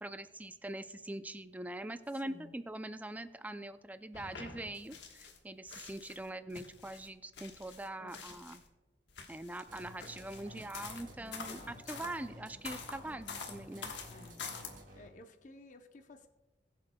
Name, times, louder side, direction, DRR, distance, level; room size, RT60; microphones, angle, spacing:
voice 1, 0.0-8.6 9.3-13.9, right 1 dB, 10° right, 11 dB, 0.4 m, -43 dB
voice 2, 2.1-2.5 8.0-8.2 11.2-11.9 14.1-14.5 14.9-16.3, left 2 dB, 45° left, 6 dB, 0.7 m, -55 dB
sound 1, 4.1-5.4 5.7-8.7 9.1-12.2 12.6-14.7, left 5 dB, 75° left, 1.3 m, -47 dB
sound 2, 9.7-15.2, equal, 50° right, 1.8 m, -54 dB
sound 3, 10.4-14.8, equal, 30° right, 1.7 m, -58 dB
21.5 x 7.5 x 2.3 m, 1.1 s
head